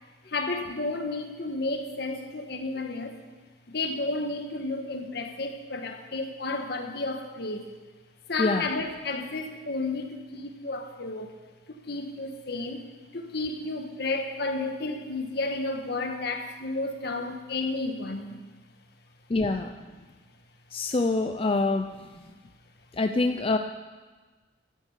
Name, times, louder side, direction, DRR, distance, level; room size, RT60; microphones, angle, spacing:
voice 1, 0.3-3.2 3.7-7.7 8.3-11.3 11.7-12.8 13.1-18.4, left 2 dB, 60° left, 5 dB, 1.5 m, -32 dB
voice 2, 19.3-19.7 20.7-21.9 22.9-23.6, left 3 dB, 30° left, 6 dB, 0.5 m, -25 dB
13.0 x 9.9 x 8.2 m, 1.3 s
head